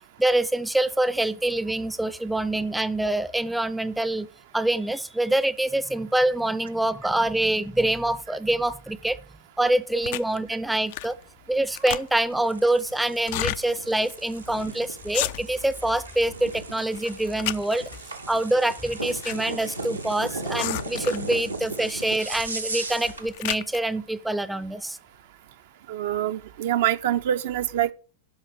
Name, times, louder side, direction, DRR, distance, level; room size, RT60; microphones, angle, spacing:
voice 1, 0.2-4.3 4.5-9.2 9.6-11.2 11.5-17.9 18.3-25.0, right 1 dB, 5° right, 0.6 m, -25 dB
sound 1, 10.0-10.4 10.9-11.2 11.5-12.4 13.2-13.6 14.1-14.2 14.4-14.7 15.0-15.7 16.1-16.6 17.0-18.0 18.8-19.4 19.6-19.7 20.6-21.3 22.2-22.5 22.9-23.8, left 16 dB, 50° left, 0.4 m, -32 dB
sound 2, 12.3-23.3, right 3 dB, 85° right, 1.2 m, -36 dB
voice 2, 25.9-27.9, right 11 dB, 55° right, 0.6 m, -25 dB
11.0 x 5.8 x 6.3 m
figure-of-eight pair, 90°, 0 cm